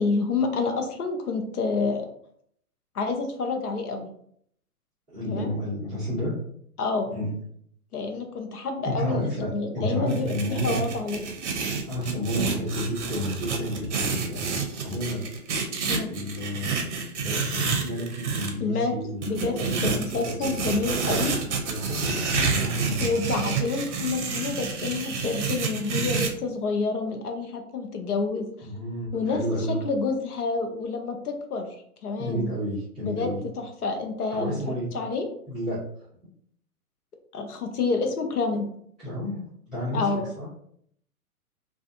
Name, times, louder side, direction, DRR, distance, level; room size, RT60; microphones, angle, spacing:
voice 1, 0.0-2.1 2.9-4.1 5.3-5.5 6.8-7.1 7.9-11.3 15.9-16.1 18.6-18.9 19.2-21.4 23.0-28.5 29.1-31.7 32.0-32.5 33.0-34.6 34.9-35.3 37.3-38.7 39.9-40.3, left 4 dB, 80° left, 4 dB, 0.7 m, -28 dB
voice 2, 5.1-6.3 7.0-7.3 8.8-10.8 11.9-15.2 16.0-16.9 17.1-20.5 21.6-23.2 28.6-29.8 32.2-33.4 34.3-34.9 35.5-35.8 39.0-39.4 39.7-40.5, equal, 5° right, -16 dB, 0.4 m, -31 dB
sound 1, 10.1-18.5 19.2-26.3, right 5 dB, 50° right, 0.6 m, -29 dB
2.4 x 2.4 x 2.5 m, 0.67 s
figure-of-eight pair, 125°, 45 cm